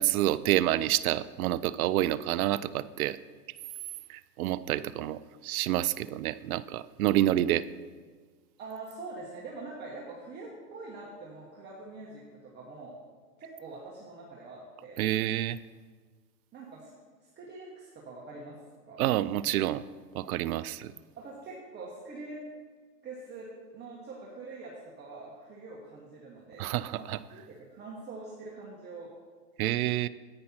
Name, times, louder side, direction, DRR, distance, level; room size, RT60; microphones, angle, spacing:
voice 1, 0.0-3.2 4.1-7.6 15.0-15.6 19.0-19.8 20.1-20.9 26.6-27.2 29.6-30.1, right 14 dB, 60° right, 16 dB, 0.5 m, -28 dB
voice 2, 8.6-13.0 13.4-15.0 16.5-16.9 17.3-18.6 18.9-19.0 21.2-22.4 23.0-29.1, right 3 dB, 20° right, -4 dB, 1.3 m, -44 dB
10.0 x 8.7 x 4.4 m, 1.5 s
hypercardioid pair, 120°, 50 cm